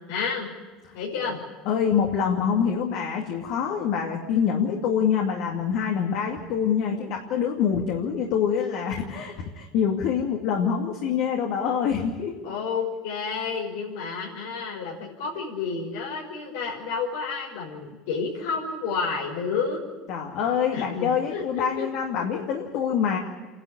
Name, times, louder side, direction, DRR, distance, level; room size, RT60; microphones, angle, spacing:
voice 1, 0.1-0.5 0.9-1.4 12.4-19.8 20.7-21.9, left 5 dB, 90° left, -3 dB, 5.8 m, -30 dB
voice 2, 1.7-12.4 20.1-23.2, left 7 dB, 65° left, 0 dB, 2.5 m, -25 dB
27.5 x 11.5 x 10.0 m, 1.3 s
supercardioid pair, 130°, 0 cm